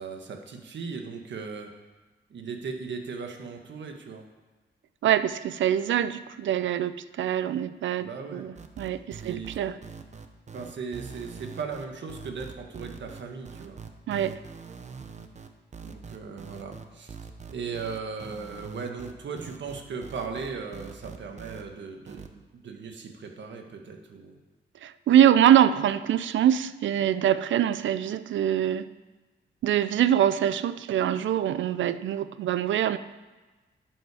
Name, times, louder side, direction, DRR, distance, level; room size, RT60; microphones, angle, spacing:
voice 1, 0.0-1.7 2.3-4.2 8.0-8.5 9.2-9.5 10.5-13.8 15.8-17.1 17.5-24.4, right 5 dB, 75° right, 4 dB, 1.4 m, -37 dB
voice 2, 5.0-9.8 14.1-14.4 24.8-28.9 29.6-33.0, right 10 dB, 90° right, 14 dB, 0.5 m, -24 dB
sound 1, 8.6-21.6 22.1-22.3, right 5 dB, 40° right, 0.8 m, -43 dB
11.5 x 7.9 x 4.9 m, 1.2 s
cardioid pair, 105°, 19 cm